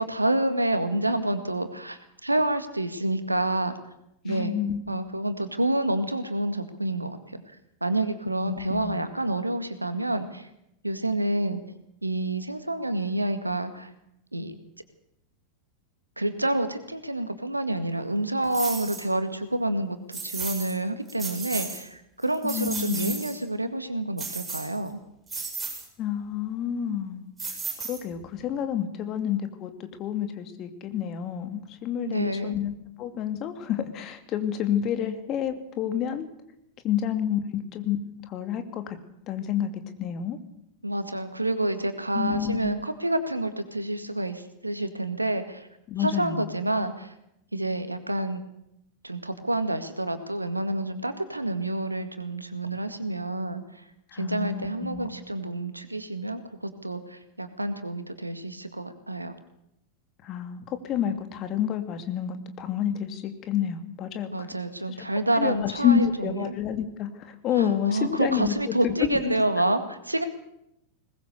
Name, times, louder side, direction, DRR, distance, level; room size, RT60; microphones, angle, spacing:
voice 1, 0.0-3.8 4.2-4.5 4.9-7.4 7.8-10.5 10.8-11.6 12.0-13.9 14.3-14.6 16.2-25.0 32.0-32.6 40.8-45.7 46.0-47.1 47.5-48.4 49.0-53.8 54.1-59.3 64.3-66.6 67.5-70.2, right 1 dB, 85° right, 9 dB, 1.9 m, -28 dB
voice 2, 4.3-4.8 8.5-9.0 22.4-23.2 26.0-27.3 27.9-36.3 36.8-38.0 38.3-39.0 39.3-40.4 42.1-42.7 45.9-46.5 54.1-55.1 60.2-64.5 65.3-69.3, left 9 dB, 35° left, 8 dB, 2.5 m, -29 dB
sound 1, 18.5-19.1 20.1-20.7 21.1-21.8 22.2-23.4 24.2-24.9 25.3-25.9 27.4-28.2, right 4 dB, 10° right, 7.7 m, -34 dB
21.0 x 20.0 x 6.8 m, 0.79 s
figure-of-eight pair, 90°, 0 cm